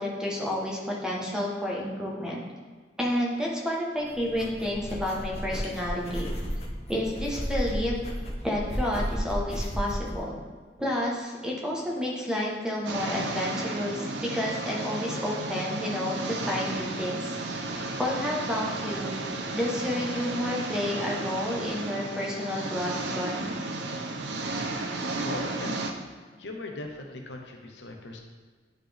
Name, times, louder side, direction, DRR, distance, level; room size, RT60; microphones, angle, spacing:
voice 1, 0.0-2.4 3.0-6.3 6.9-8.0 8.4-10.4 10.8-16.2 16.5-17.4 17.7-19.1 19.5-23.5, left 1 dB, 5° right, -3 dB, 1.1 m, -30 dB
sound 1, 4.0-10.2, equal, 40° left, 0.9 m, -33 dB
sound 2, 12.9-25.9, right 2 dB, 70° right, 0.6 m, -33 dB
voice 2, 25.2-26.0 26.4-28.2, left 2 dB, 70° left, 2 dB, 0.9 m, -38 dB
10.0 x 4.1 x 3.4 m, 1.4 s
head